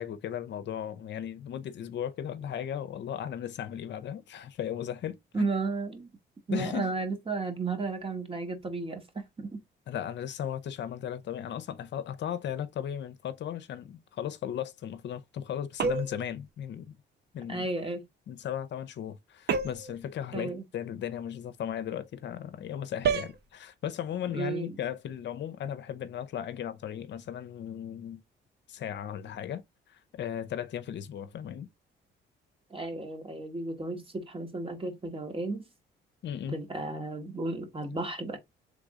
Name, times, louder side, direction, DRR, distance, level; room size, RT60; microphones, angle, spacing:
voice 1, 0.0-5.5 6.5-6.9 9.9-17.0 17.3-17.7 18.3-28.2 28.7-29.6 29.9-31.7 36.2-36.6, left 9 dB, 65° left, 0.6 m, -36 dB
voice 2, 5.3-6.1 6.5-9.6 17.5-18.0 20.3-20.6 24.3-24.8 32.7-35.7 36.5-38.4, right 3 dB, 25° right, 1.5 m, -33 dB
sound 1, 15.8-16.3 19.5-20.0 23.0-23.4, right 5 dB, 55° right, 1.0 m, -28 dB
3.8 x 3.5 x 3.6 m
cardioid pair, 90°, 20 cm